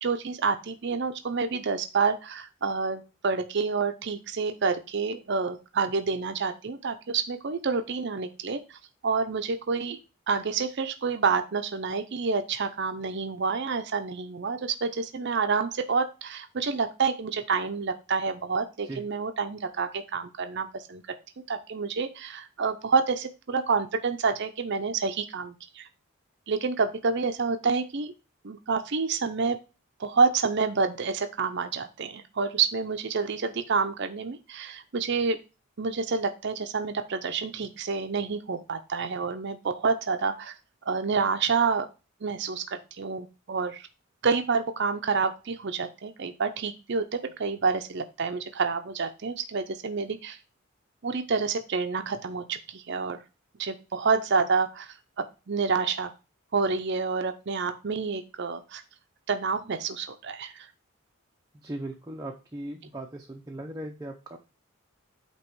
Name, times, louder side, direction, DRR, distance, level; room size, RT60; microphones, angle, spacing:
voice 1, 0.0-10.0 10.3-21.0 21.5-25.9 26.5-28.1 28.4-29.6 30.0-35.4 35.8-40.5 40.9-41.9 42.2-43.9 44.2-50.4 51.0-53.2 53.6-55.0 55.5-56.1 56.5-58.8 59.3-60.7, right 5 dB, 55° right, 7 dB, 0.6 m, -28 dB
voice 2, 61.5-64.4, right 1 dB, 15° right, 1 dB, 0.6 m, -38 dB
8.5 x 3.0 x 4.5 m, 0.30 s
head